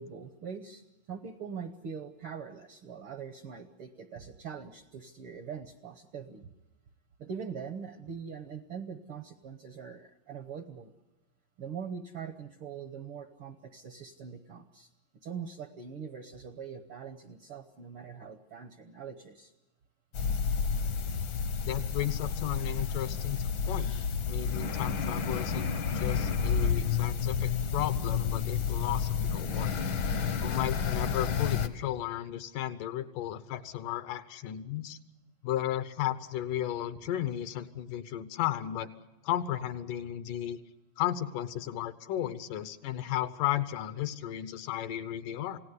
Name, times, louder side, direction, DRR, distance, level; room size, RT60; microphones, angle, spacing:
voice 1, 0.0-6.5 7.2-10.9 11.6-14.9 15.2-19.5, right 6 dB, 70° right, 8 dB, 1.3 m, -42 dB
sound 1, 20.1-31.7, left 6 dB, 60° left, 1.3 m, -30 dB
voice 2, 21.6-23.9 24.3-25.7 25.9-29.7 30.4-35.0 35.4-38.9 39.2-40.6 41.0-45.6, left 12 dB, 80° left, 12 dB, 2.5 m, -34 dB
28.0 x 17.5 x 8.1 m, 1.0 s
omnidirectional pair, 3.8 m